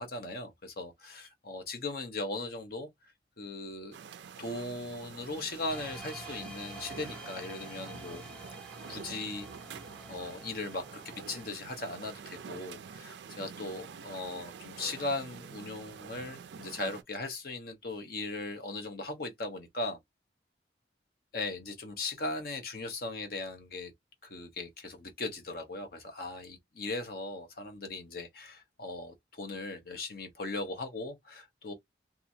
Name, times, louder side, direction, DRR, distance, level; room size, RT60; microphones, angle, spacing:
voice 1, 0.0-2.9 3.4-4.0 4.4-8.2 8.9-9.5 10.1-20.0 21.3-23.9 24.2-31.7, left 2 dB, 50° left, 0.8 m, -38 dB
sound 1, 3.9-17.0, right 6 dB, 70° right, 0.4 m, -47 dB
sound 2, 5.7-11.5, right 1 dB, 5° left, 0.5 m, -48 dB
2.9 x 2.4 x 2.7 m
head